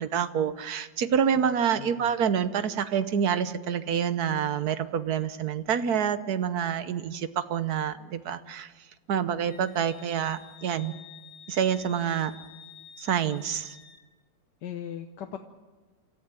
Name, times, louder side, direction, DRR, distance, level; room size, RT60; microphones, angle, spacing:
voice 1, 0.0-8.7 9.1-10.9 11.5-12.3 13.0-13.8, right 8 dB, 60° right, 12 dB, 1.3 m, -27 dB
voice 2, 1.8-2.1 14.6-15.4, left 9 dB, 70° left, 6 dB, 1.6 m, -38 dB
Wind instrument woodwind instrument, 9.5-14.0, left 8 dB, 90° left, 5.4 m, -50 dB
28.5 x 14.0 x 9.0 m, 1.3 s
omnidirectional pair, 2.0 m